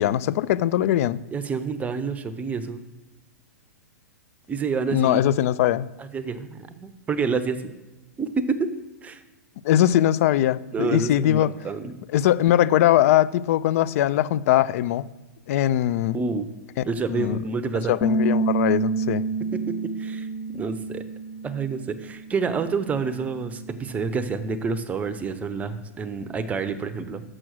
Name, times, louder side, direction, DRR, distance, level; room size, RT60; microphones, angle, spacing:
voice 1, 0.0-1.2 4.9-5.9 9.6-11.5 12.1-15.0 15.5-16.2 17.1-17.4 17.9-19.2, left 12 dB, 60° left, 0.3 m, -21 dB
voice 2, 1.3-2.8 4.5-5.2 6.0-7.6 8.2-8.7 9.0-9.2 10.7-12.0 16.1-16.5 16.9-17.9 19.5-20.3 20.5-21.0 21.4-27.2, right 4 dB, 15° right, 0.6 m, -28 dB
Bass guitar, 18.0-24.2, right 3 dB, 25° left, 0.7 m, -29 dB
6.2 x 6.1 x 6.2 m
hypercardioid pair, 120°, 9 cm